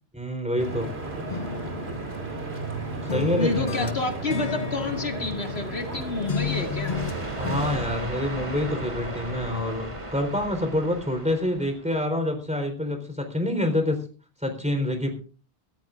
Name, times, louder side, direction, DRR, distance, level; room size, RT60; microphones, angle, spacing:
voice 1, 0.1-0.9 3.1-3.9 7.4-14.0 14.4-15.1, left 1 dB, 5° right, 5 dB, 3.9 m, -27 dB
Stream / Boat Water vehicle, 0.6-7.8, right 2 dB, 85° right, 2.8 m, -34 dB
sound 1, 1.3-2.8 3.1-6.0 6.3-7.7, left 6 dB, 50° left, 0.9 m, -33 dB
voice 2, 3.4-7.0, left 3 dB, 90° left, 4 dB, 2.5 m, -29 dB
sound 2, 6.4-12.0, right 1 dB, 30° right, 2.2 m, -35 dB
24.0 x 14.0 x 2.5 m, 0.37 s
omnidirectional pair, 1.0 m